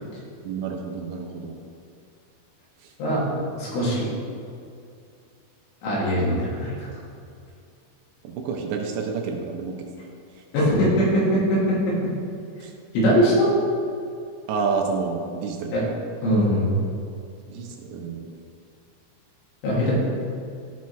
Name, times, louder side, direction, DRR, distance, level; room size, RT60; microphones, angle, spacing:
voice 1, 0.4-1.6 2.8-2.9 8.2-9.9 12.6-12.7 14.5-15.8 17.5-18.3, right 5 dB, 80° right, 2 dB, 2.8 m, -29 dB
voice 2, 3.5-4.1 5.8-6.9 10.5-12.1 12.9-13.5 15.7-15.8 16.2-16.8 19.6-19.9, equal, 85° left, -6 dB, 4.6 m, -21 dB
13.5 x 5.9 x 3.1 m, 2.5 s
omnidirectional pair, 5.3 m